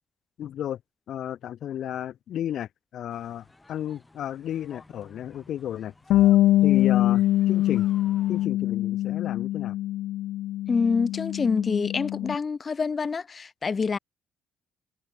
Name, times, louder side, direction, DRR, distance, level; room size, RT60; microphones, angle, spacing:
voice 1, 0.4-0.8 1.1-5.9 6.6-7.9 8.3-9.8, left 11 dB, 60° left, 2.1 m, -33 dB
sound 1, 3.1-8.5, left 2 dB, 10° left, 6.3 m, -54 dB
Bass guitar, 6.1-12.4, left 14 dB, 80° left, 0.5 m, -23 dB
voice 2, 10.7-14.0, left 5 dB, 25° left, 0.4 m, -26 dB
cardioid pair, 145°, 0 cm